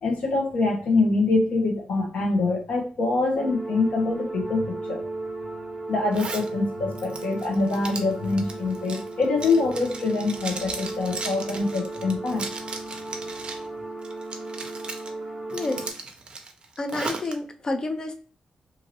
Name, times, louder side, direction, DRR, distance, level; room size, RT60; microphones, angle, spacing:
voice 1, 0.0-5.1 5.9-12.5, left 3 dB, 90° left, 0 dB, 1.0 m, -25 dB
sound 1, 3.3-15.9, right 2 dB, ahead, 0.9 m, -35 dB
Zipper (clothing), 6.1-6.5 6.9-13.7 14.0-15.1 15.5-17.3, right 3 dB, 45° right, 0.5 m, -36 dB
voice 2, 15.5-15.9 16.8-18.1, left 2 dB, 35° left, 5 dB, 0.4 m, -29 dB
2.7 x 2.7 x 2.9 m, 0.39 s
cardioid pair, 105°, 2 cm